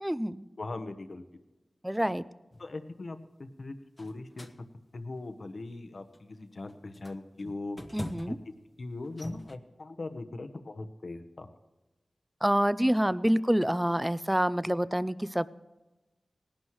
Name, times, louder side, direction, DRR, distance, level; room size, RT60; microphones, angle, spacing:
voice 1, 0.0-0.4 1.8-2.2 7.9-8.4 12.4-15.5, equal, 10° right, 16 dB, 0.5 m, -27 dB
voice 2, 0.6-1.2 2.6-4.5 4.9-7.8 8.3-8.5 8.8-11.5, left 2 dB, 60° left, 9 dB, 1.0 m, -40 dB
sound 1, 2.5-2.7 4.0-4.6 5.2-5.4 6.1-6.3 6.7-8.5 9.0-9.6, left 1 dB, 25° left, 0.9 m, -42 dB
19.5 x 11.5 x 3.1 m, 1.1 s
wide cardioid pair, 65°, 0 cm